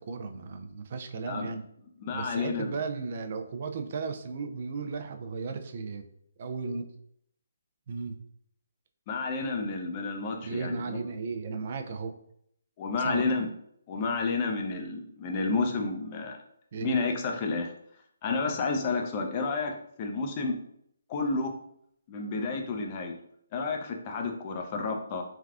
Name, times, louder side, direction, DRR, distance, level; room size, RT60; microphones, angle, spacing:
voice 1, 0.0-1.6 2.1-6.0 6.4-6.9 7.9-8.2 10.4-12.1 13.0-13.3 16.7-17.0, right 4 dB, 45° right, 7 dB, 0.3 m, -35 dB
voice 2, 2.0-2.8 9.1-11.0 12.8-13.5 13.9-16.4 16.8-17.7 18.2-19.7 20.0-20.6 21.1-21.5 22.1-23.1 23.5-25.2, left 4 dB, 30° left, 3 dB, 0.5 m, -30 dB
3.3 x 2.3 x 2.4 m, 0.71 s
hypercardioid pair, 150°, 0 cm